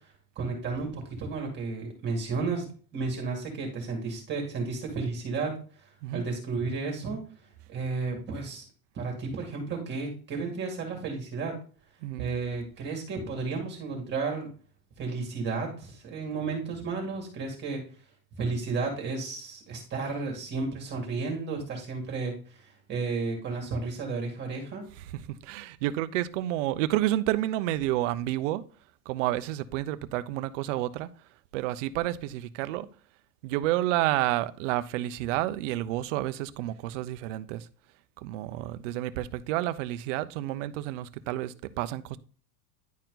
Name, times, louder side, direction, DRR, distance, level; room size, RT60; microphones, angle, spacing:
voice 1, 0.4-2.7 2.9-7.2 7.7-8.7 8.9-11.6 12.2-14.5 15.0-17.8 18.4-24.9, right 4 dB, 20° right, 2.2 m, -33 dB
voice 2, 12.0-12.3 25.0-28.6 29.1-31.1 31.5-32.9 33.4-37.7 38.2-42.2, right 15 dB, 50° right, 0.7 m, -30 dB
10.5 x 4.6 x 3.9 m
supercardioid pair, 160°, 46 cm